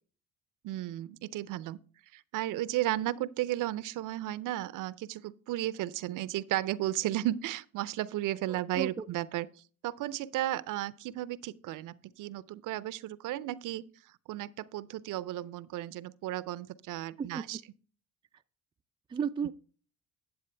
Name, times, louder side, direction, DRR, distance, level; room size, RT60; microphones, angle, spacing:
voice 1, 0.6-1.8 2.1-9.5 9.8-13.8 14.3-17.6, right 14 dB, 65° right, 0.6 m, -34 dB
voice 2, 8.5-9.1 17.2-17.6 19.1-19.5, right 6 dB, 15° right, 0.3 m, -34 dB
9.7 x 8.2 x 3.3 m
supercardioid pair, 75°, 35 cm